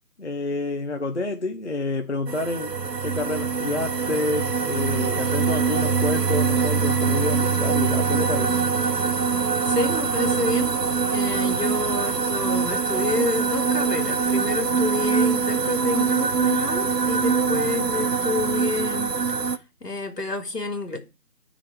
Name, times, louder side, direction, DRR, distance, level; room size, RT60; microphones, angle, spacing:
voice 1, 0.2-2.8 3.0-8.6 17.5-18.0, left 2 dB, 45° left, 0.7 m, -28 dB
sound 1, 2.3-19.6, right 5 dB, 85° right, 0.9 m, -23 dB
voice 2, 9.6-10.8 11.1-21.0, left 2 dB, 80° left, 2.3 m, -29 dB
10.5 x 3.9 x 5.0 m
figure-of-eight pair, 160°, 48 cm